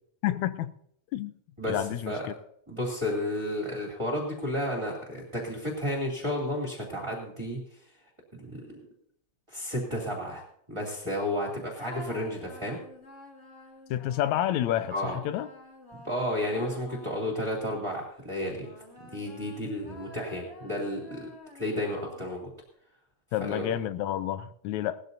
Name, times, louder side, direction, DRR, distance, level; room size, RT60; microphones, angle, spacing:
voice 1, 0.2-0.7 1.1-1.4 1.7-2.3 13.9-15.5 23.3-25.0, left 12 dB, 80° left, 2.0 m, -29 dB
voice 2, 1.6-2.2 2.7-7.6 8.3-8.8 9.5-10.4 10.7-12.8 14.9-15.2 16.0-18.7 19.0-22.5 23.4-23.7, left 1 dB, 10° right, 2.5 m, -32 dB
sound 1, 11.8-18.0 18.6-22.5, left 2 dB, 25° left, 2.1 m, -48 dB
18.5 x 13.5 x 2.7 m
omnidirectional pair, 3.4 m